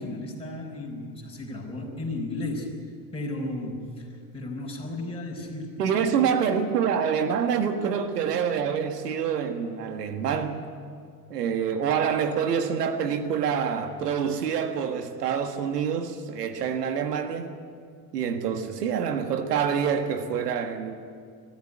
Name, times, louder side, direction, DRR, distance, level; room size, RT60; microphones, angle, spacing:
voice 1, 0.0-2.8 3.1-4.1 4.3-5.9 6.2-6.3, left 2 dB, 10° left, 4.4 m, -34 dB
voice 2, 5.8-10.7 11.3-17.5 18.1-20.9, right 7 dB, 85° right, 1.6 m, -26 dB
23.0 x 13.5 x 9.8 m
hypercardioid pair, 75°, 46 cm